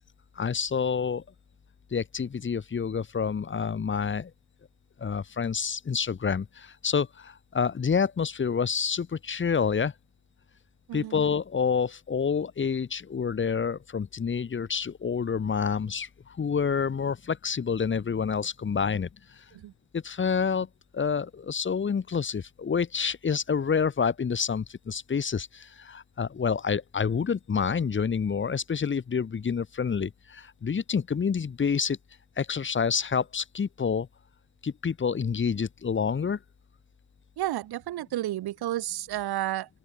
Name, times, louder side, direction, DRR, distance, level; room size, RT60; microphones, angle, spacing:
voice 1, 0.3-1.2 1.9-4.3 5.0-9.9 10.9-19.4 19.9-20.7 20.9-32.0 32.4-34.1 34.6-36.4, left 6 dB, 30° left, 6.9 m, -28 dB
voice 2, 10.9-11.2 19.6-19.7 37.4-39.7, right 14 dB, 65° right, 7.5 m, -31 dB
open air
cardioid pair, 155°, 42 cm